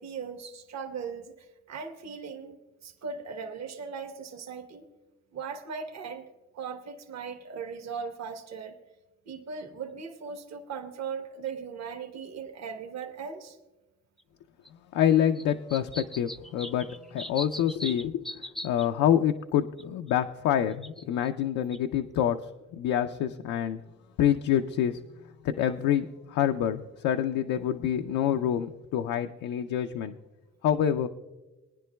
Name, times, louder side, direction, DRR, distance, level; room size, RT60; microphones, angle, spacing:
voice 1, 0.0-4.9 5.3-6.2 6.5-8.8 9.3-13.6, right 5 dB, 60° right, 6 dB, 1.2 m, -38 dB
sound 1, 11.5-11.6 13.0-13.1 14.2-14.3 14.7-14.8 15.4-18.9 19.8-20.1 20.7-21.3 21.7-21.8, equal, ahead, 0.3 m, -40 dB
voice 2, 14.9-22.4 22.7-23.8 24.2-25.0 25.4-30.1 30.6-31.1, left 10 dB, 90° left, 6 dB, 0.5 m, -27 dB
22.0 x 9.9 x 2.2 m, 1.1 s
cardioid pair, 90°, 30 cm